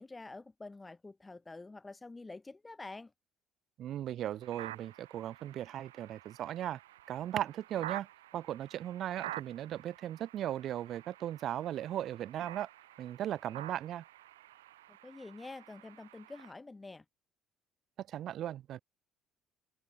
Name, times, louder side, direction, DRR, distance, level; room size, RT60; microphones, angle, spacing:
voice 1, 0.0-3.1 15.0-17.0, left 3 dB, 20° left, 5.9 m, -47 dB
voice 2, 3.8-6.8 7.1-8.1 8.3-12.7 13.0-14.0 18.0-18.8, right 11 dB, 50° right, 0.7 m, -37 dB
sound 1, 4.4-16.5, right 15 dB, 75° right, 6.5 m, -49 dB
figure-of-eight pair, 55°, 0 cm